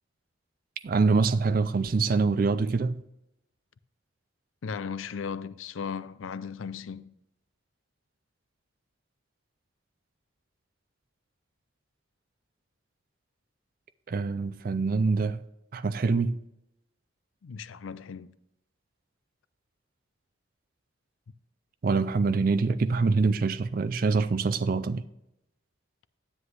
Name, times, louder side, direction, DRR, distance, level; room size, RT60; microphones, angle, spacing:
voice 1, 0.8-3.0 14.1-15.4 15.7-16.4 21.8-25.0, right 4 dB, 45° right, 0.4 m, -25 dB
voice 2, 4.6-7.1 17.4-18.3, left 6 dB, 85° left, 0.4 m, -36 dB
9.9 x 7.8 x 3.3 m
head